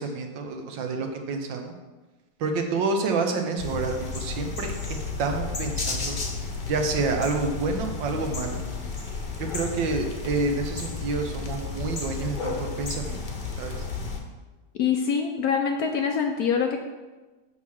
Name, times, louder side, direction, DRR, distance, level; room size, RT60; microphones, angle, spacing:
voice 1, 0.0-1.7 2.4-6.2 6.7-8.6 9.4-13.2 13.6-13.8, right 3 dB, 80° right, 4 dB, 1.6 m, -28 dB
sound 1, 3.6-14.2, left 4 dB, 35° left, 0.8 m, -32 dB
voice 2, 14.8-16.8, left 6 dB, 70° left, 4 dB, 0.9 m, -24 dB
5.9 x 5.7 x 6.3 m, 1.2 s
omnidirectional pair, 2.0 m